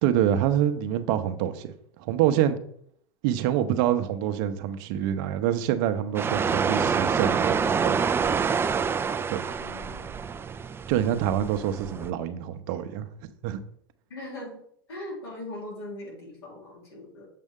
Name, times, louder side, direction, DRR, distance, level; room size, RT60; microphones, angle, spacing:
voice 1, 0.0-1.7 2.0-2.6 3.2-7.9 9.3-9.4 10.9-13.1 13.4-13.6, right 11 dB, 60° right, 9 dB, 0.8 m, -26 dB
sound 1, 6.1-12.1, right 6 dB, 20° right, 0.4 m, -27 dB
voice 2, 9.6-10.1 14.1-14.6 14.9-17.3, left 1 dB, 90° left, -3 dB, 3.4 m, -40 dB
7.5 x 5.3 x 3.7 m, 0.65 s
hypercardioid pair, 100°, 12 cm